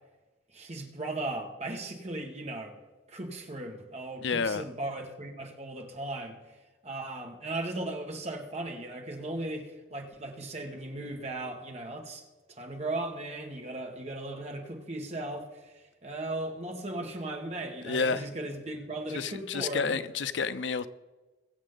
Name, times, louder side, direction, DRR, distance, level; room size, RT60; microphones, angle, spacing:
voice 1, 0.5-2.8 3.1-6.4 6.8-12.2 12.5-20.0, right 2 dB, 35° right, 1.7 m, -37 dB
voice 2, 4.2-4.6 17.8-18.3 19.1-20.9, left 5 dB, 85° left, 0.6 m, -30 dB
22.0 x 7.4 x 3.9 m
head